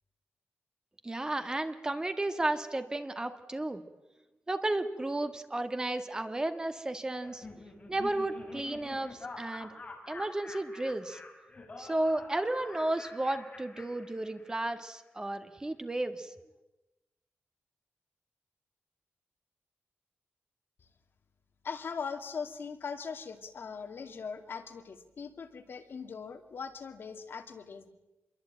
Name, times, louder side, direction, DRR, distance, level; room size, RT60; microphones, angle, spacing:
voice 1, 1.0-3.8 4.5-7.5 7.9-9.7 10.1-11.2 11.8-16.3, right 2 dB, 15° right, 8 dB, 1.5 m, -33 dB
Laughter, 7.2-14.7, left 3 dB, 30° left, 4.6 m, -47 dB
voice 2, 21.6-27.9, left 5 dB, 60° left, 6 dB, 2.3 m, -40 dB
27.0 x 22.5 x 8.9 m, 1.1 s
wide cardioid pair, 165°, 4 cm